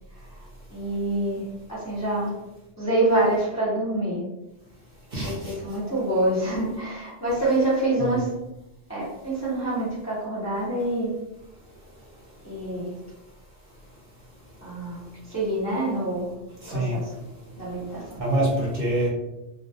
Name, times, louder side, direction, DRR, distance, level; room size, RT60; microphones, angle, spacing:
voice 1, 0.7-1.4 1.7-2.3 2.8-4.2 5.2-8.3 8.9-11.1 12.4-12.9 14.6-16.3 16.7-17.1 17.6-18.2, right 1 dB, 20° left, -9 dB, 0.6 m, -26 dB
voice 2, 5.1-5.5 16.6-17.0 18.2-19.1, right 1 dB, 55° right, -5 dB, 0.8 m, -25 dB
2.3 x 2.0 x 2.7 m, 0.98 s
omnidirectional pair, 1.2 m